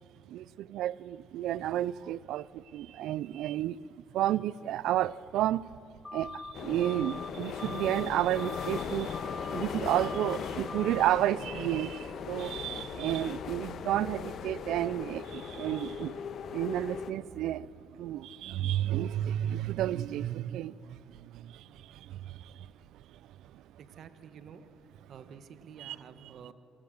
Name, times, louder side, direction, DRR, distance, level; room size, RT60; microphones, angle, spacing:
voice 1, 0.3-3.8 4.1-5.6 6.1-9.2 9.5-16.2 16.5-22.7 23.5-23.6 25.8-26.0, right 13 dB, 85° right, 0.4 m, -31 dB
sound 1, 6.0-6.5 6.8-7.3 7.6-8.1 8.3-8.8 9.1-9.6 9.9-10.4 10.7-11.2, left 3 dB, 20° left, 1.1 m, -42 dB
sound 2, 6.5-17.1, left 7 dB, 65° left, 1.3 m, -38 dB
voice 2, 23.8-24.6 25.1-26.5, right 7 dB, 65° right, 1.4 m, -50 dB
27.0 x 20.0 x 6.6 m
cardioid pair, 90°, 0 cm